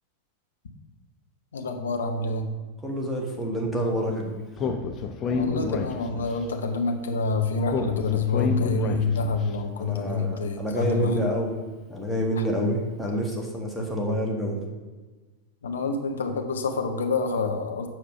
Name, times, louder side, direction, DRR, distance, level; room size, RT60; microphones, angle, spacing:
voice 1, 1.5-2.5 5.3-11.3 15.6-17.9, left 3 dB, 65° left, 5 dB, 1.0 m, -27 dB
voice 2, 2.8-4.4 9.8-11.6 11.9-14.6, equal, ahead, -2 dB, 1.7 m, -28 dB
Speech, 4.6-6.4 7.7-9.4, left 4 dB, 30° left, 0.7 m, -28 dB
7.4 x 4.9 x 5.4 m, 1.3 s
figure-of-eight pair, 90°, 0 cm